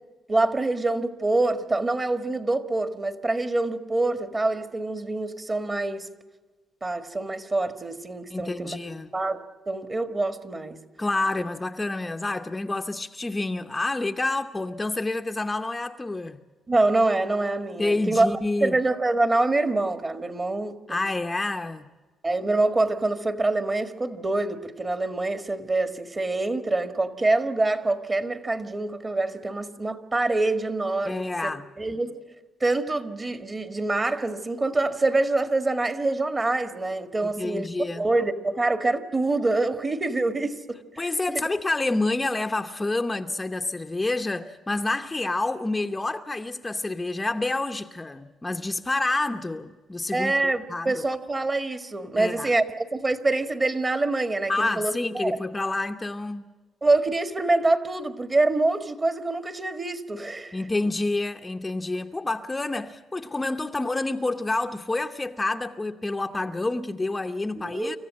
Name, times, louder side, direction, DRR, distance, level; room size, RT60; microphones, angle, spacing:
voice 1, 0.3-6.1 6.8-8.8 9.1-10.8 16.7-21.0 22.2-31.3 31.8-32.2 32.6-37.7 38.0-41.4 50.1-55.4 56.8-60.6 67.5-68.0, right 2 dB, 25° right, 1.8 m, -25 dB
voice 2, 8.3-9.1 11.0-16.4 17.8-18.8 20.9-21.9 31.1-31.7 37.2-38.1 41.0-50.3 50.7-51.0 52.2-52.5 54.5-56.5 60.5-68.0, left 2 dB, 15° left, 0.9 m, -28 dB
26.5 x 14.5 x 7.7 m
cardioid pair, 90°, 0 cm